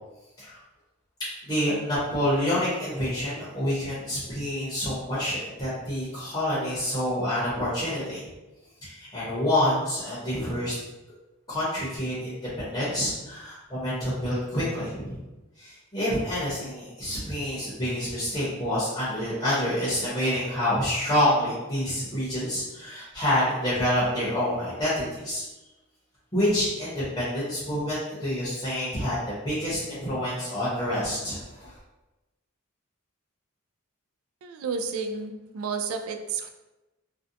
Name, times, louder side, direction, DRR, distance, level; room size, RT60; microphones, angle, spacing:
voice 1, 1.4-8.2 8.8-10.7 11.5-15.2 15.6-25.4 26.3-31.8, left 1 dB, 20° left, -10 dB, 0.7 m, -27 dB
voice 2, 34.4-36.5, right 5 dB, 75° right, 6 dB, 0.3 m, -31 dB
2.5 x 2.1 x 2.6 m, 1.0 s
head